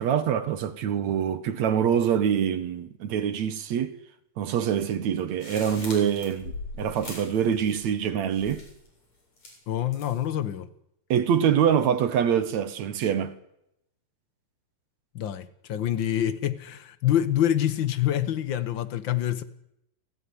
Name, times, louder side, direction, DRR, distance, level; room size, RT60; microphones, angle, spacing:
voice 1, 0.0-4.0 4.4-8.6 11.1-13.3, right 8 dB, 60° right, 2.3 m, -25 dB
sound 1, 5.4-8.0 8.3-8.9 9.4-10.3, left 2 dB, 50° left, 9.1 m, -41 dB
voice 2, 9.7-10.7 15.1-19.4, left 11 dB, 85° left, 1.0 m, -26 dB
29.5 x 19.0 x 9.9 m
omnidirectional pair, 3.9 m